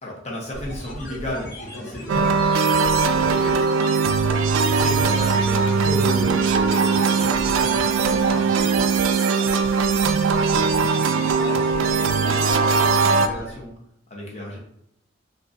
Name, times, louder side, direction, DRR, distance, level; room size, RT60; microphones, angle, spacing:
voice 1, 0.0-2.3 2.8-3.6 4.7-8.9 10.3-13.7 14.1-14.6, left 1 dB, 35° left, -2 dB, 0.8 m, -34 dB
sound 1, 0.5-13.7, equal, 50° left, 1.2 m, -36 dB
sound 2, 2.1-13.3, right 5 dB, 80° right, 0.3 m, -20 dB
3.7 x 2.5 x 2.6 m, 0.74 s
head